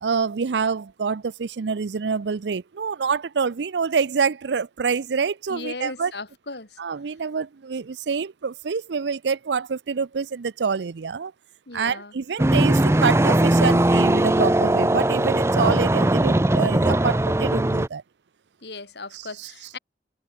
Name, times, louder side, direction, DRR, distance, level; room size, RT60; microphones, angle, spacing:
voice 1, 0.0-6.1 6.8-11.3 11.7-18.0 19.1-19.5, right 5 dB, 85° right, 0.5 m, -26 dB
voice 2, 5.5-6.8 11.7-12.1 18.6-19.8, left 3 dB, 75° left, 4.1 m, -37 dB
sound 1, 12.4-17.9, right 1 dB, 15° right, 0.5 m, -19 dB
head